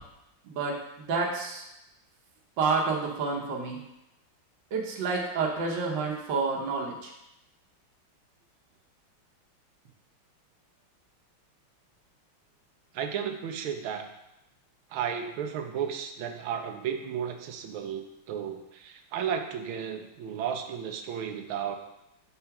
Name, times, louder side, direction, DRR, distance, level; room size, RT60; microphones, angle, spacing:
voice 1, 0.4-1.6 2.6-3.8 4.7-7.1, right 4 dB, 65° right, -2 dB, 1.5 m, -29 dB
voice 2, 12.9-14.1 14.9-21.8, right 8 dB, 80° right, 5 dB, 1.5 m, -33 dB
5.7 x 4.4 x 5.8 m, 0.89 s
omnidirectional pair, 2.3 m